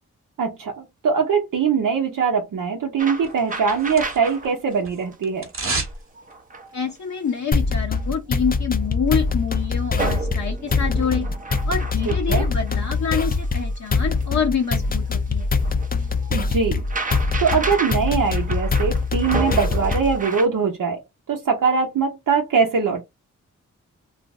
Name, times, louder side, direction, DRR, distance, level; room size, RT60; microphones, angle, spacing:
voice 1, 0.4-5.5 12.1-12.5 16.3-16.8 17.4-21.0 21.3-23.1, right 5 dB, 85° right, 0.7 m, -22 dB
sound 1, 3.0-4.5 4.8-5.1 5.8-6.9 7.5-7.6 7.9-8.1 8.5-9.7 10.0-20.5, right 3 dB, 25° right, 0.6 m, -33 dB
sound 2, 3.2-4.5 4.7-6.0 6.3-6.4, right 3 dB, 40° right, 1.0 m, -30 dB
voice 2, 6.7-11.3 11.7-15.5, left 6 dB, 60° left, 0.8 m, -26 dB
sound 3, 7.5-20.2, left 4 dB, 30° left, 0.5 m, -23 dB
2.5 x 2.0 x 3.5 m
cardioid pair, 65°, 32 cm